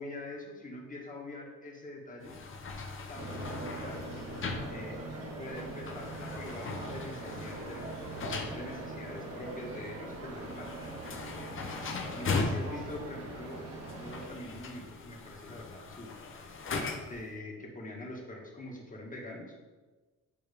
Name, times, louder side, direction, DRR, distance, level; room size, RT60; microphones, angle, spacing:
voice 1, 0.0-2.4 3.1-4.0 4.7-5.0 5.4-10.7 12.2-13.6 14.0-16.1 17.1-19.5, left 1 dB, 25° left, -2 dB, 1.5 m, -44 dB
sound 1, 2.2-17.3, left 4 dB, 45° left, 0.8 m, -39 dB
sound 2, 3.1-14.3, right 2 dB, 50° right, 1.3 m, -42 dB
8.7 x 3.1 x 3.5 m, 1.3 s
cardioid pair, 90°, 30 cm